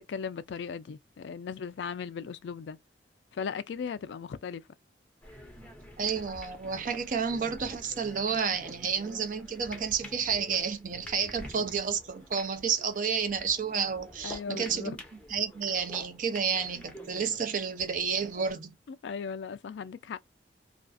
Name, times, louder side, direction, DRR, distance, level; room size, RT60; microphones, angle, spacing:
voice 1, 0.0-2.8 3.3-4.6 14.2-15.0 18.9-20.2, left 6 dB, 75° left, 0.3 m, -37 dB
sound 1, 5.2-18.5, left 1 dB, 5° left, 0.6 m, -48 dB
voice 2, 6.0-15.0 15.3-18.8, right 6 dB, 45° right, 0.4 m, -30 dB
2.4 x 2.4 x 2.2 m
head